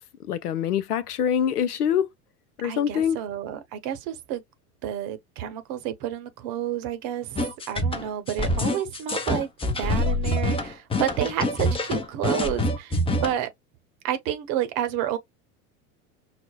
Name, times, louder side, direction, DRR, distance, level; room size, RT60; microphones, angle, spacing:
voice 1, 0.3-2.1 2.6-3.2, left 8 dB, 90° left, 0.6 m, -24 dB
voice 2, 2.6-4.4 4.8-9.5 9.8-13.5 14.0-15.2, right 11 dB, 55° right, 0.9 m, -30 dB
sound 1, 7.4-13.3, left 1 dB, 15° left, 0.6 m, -25 dB
5.8 x 2.0 x 2.2 m
hypercardioid pair, 80°, 44 cm